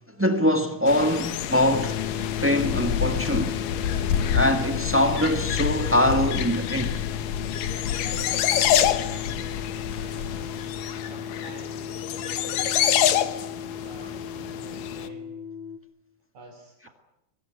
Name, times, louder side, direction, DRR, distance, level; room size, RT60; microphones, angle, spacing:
voice 1, 0.2-2.0 2.4-3.6 4.3-7.0 14.0-14.1, left 1 dB, 15° right, 0.5 m, -23 dB
sound 1, 0.9-15.1, left 10 dB, 85° left, 2.9 m, -27 dB
sound 2, 1.7-15.8, left 8 dB, 65° left, 2.4 m, -35 dB
voice 2, 9.1-13.2 13.8-15.3 16.3-16.9, right 3 dB, 60° right, 4.6 m, -48 dB
24.0 x 21.0 x 9.1 m
omnidirectional pair, 3.8 m